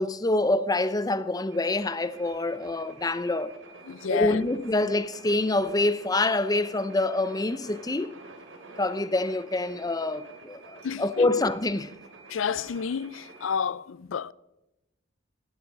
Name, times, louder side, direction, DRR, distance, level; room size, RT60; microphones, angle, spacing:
voice 1, 0.0-3.5 4.1-8.1 8.8-11.9, left 2 dB, 20° left, 0.6 m, -26 dB
sound 1, 1.5-13.6, right 3 dB, 65° right, 2.9 m, -48 dB
voice 2, 3.9-4.4 10.8-11.4 12.3-14.3, left 7 dB, 75° left, 0.4 m, -30 dB
18.5 x 12.0 x 5.3 m
head